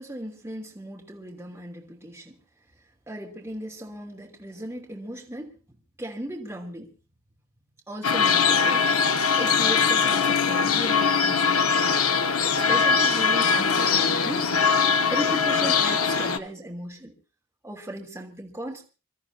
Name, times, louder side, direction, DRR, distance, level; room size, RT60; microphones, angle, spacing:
voice 1, 0.0-2.4 3.1-5.6 6.0-6.9 7.9-8.9 9.4-11.8 12.4-14.5 15.1-17.1 17.6-18.8, right 1 dB, 10° right, 3.2 m, -36 dB
sound 1, 8.0-16.4, left 5 dB, 85° left, 1.0 m, -21 dB
28.0 x 13.5 x 2.8 m
head